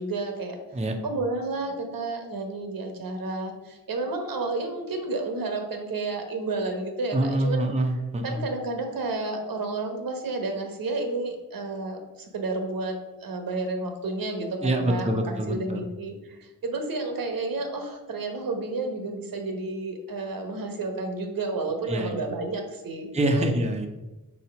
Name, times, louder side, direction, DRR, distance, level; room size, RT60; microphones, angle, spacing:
voice 1, 0.0-0.6 1.0-7.7 8.2-12.0 12.3-12.9 13.2-23.5, right 3 dB, 85° right, 4 dB, 1.1 m, -31 dB
voice 2, 7.1-8.4 14.6-15.8 21.9-22.2 23.1-23.9, right 1 dB, 20° right, 4 dB, 0.6 m, -25 dB
4.3 x 4.1 x 5.7 m, 1.0 s
wide cardioid pair, 115°, 34 cm